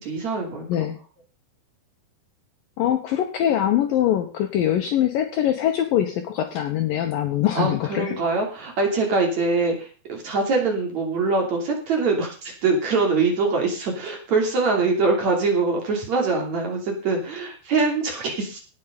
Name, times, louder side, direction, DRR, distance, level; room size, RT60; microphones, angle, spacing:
voice 1, 0.0-0.7 7.6-18.6, right 3 dB, 45° right, 1 dB, 3.8 m, -23 dB
voice 2, 2.8-8.2, left 11 dB, 70° left, 6 dB, 2.3 m, -23 dB
17.5 x 6.9 x 5.2 m, 0.37 s
omnidirectional pair, 5.0 m